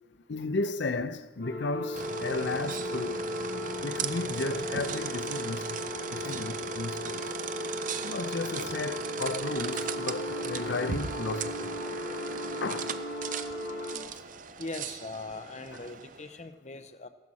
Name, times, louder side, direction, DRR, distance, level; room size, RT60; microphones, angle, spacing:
voice 1, 0.3-3.3 3.8-5.8 6.1-7.3 8.0-11.8 12.6-13.2 15.7-15.8, left 3 dB, 65° left, 0.6 m, -34 dB
sound 1, 1.4-14.0, left 1 dB, 85° left, 3.1 m, -36 dB
sound 2, 1.9-16.4, right 6 dB, 45° right, 0.5 m, -38 dB
voice 2, 14.6-17.1, left 3 dB, 35° left, 0.7 m, -40 dB
15.5 x 12.5 x 4.2 m
head